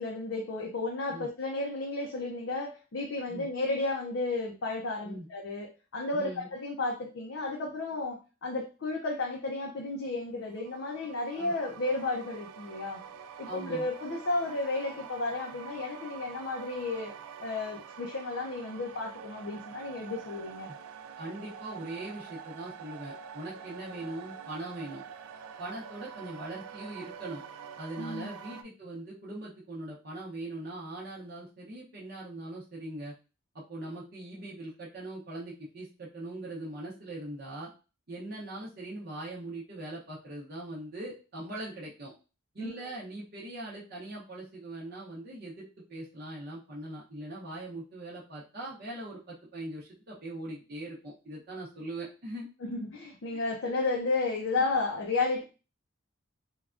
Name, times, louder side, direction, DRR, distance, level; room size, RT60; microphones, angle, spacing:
voice 1, 0.0-13.0 13.4-17.1 17.4-20.7 28.0-28.3 42.6-42.8 52.6-55.4, left 3 dB, 60° left, 0.5 m, -33 dB
voice 2, 6.1-6.5 11.3-11.5 13.4-13.9 20.7-20.8 21.2-25.0 25.6-27.4 27.7-33.1 33.5-37.7 38.1-42.1 42.5-52.5 53.3-53.4, right 1 dB, 50° right, 0.7 m, -41 dB
sound 1, 10.4-28.6, right 7 dB, 85° right, 0.3 m, -46 dB
3.4 x 2.2 x 2.4 m
head